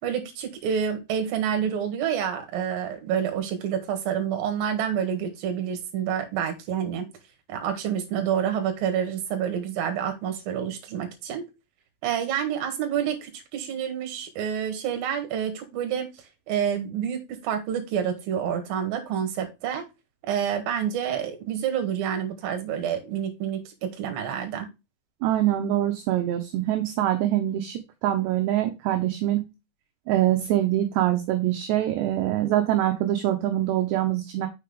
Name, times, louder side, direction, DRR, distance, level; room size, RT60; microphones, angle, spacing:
voice 1, 0.0-7.1 7.5-11.5 12.0-16.1 16.5-19.9 20.2-24.7, right 8 dB, 60° right, 6 dB, 2.9 m, -28 dB
voice 2, 25.2-29.4 30.1-34.5, right 13 dB, 75° right, 5 dB, 2.8 m, -24 dB
6.8 x 6.2 x 3.6 m, 0.24 s
omnidirectional pair, 5.7 m